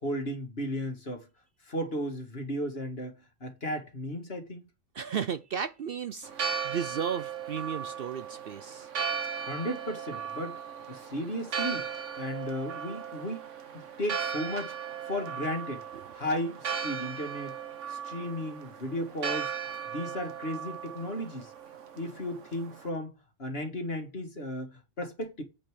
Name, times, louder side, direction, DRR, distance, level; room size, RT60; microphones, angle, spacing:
voice 1, 0.0-1.3 1.7-3.1 3.4-4.6 9.4-10.6 10.9-11.9 12.2-13.4 13.7-14.7 15.1-15.8 16.1-17.5 17.9-19.5 19.9-21.5 22.0-23.1 23.4-25.4, equal, 55° left, 2.3 m, -34 dB
voice 2, 4.9-8.9 15.9-16.0, right 7 dB, 60° right, 0.7 m, -34 dB
Church bell, 6.2-22.9, right 7 dB, 75° right, 1.4 m, -37 dB
8.6 x 5.3 x 6.3 m
omnidirectional pair, 1.3 m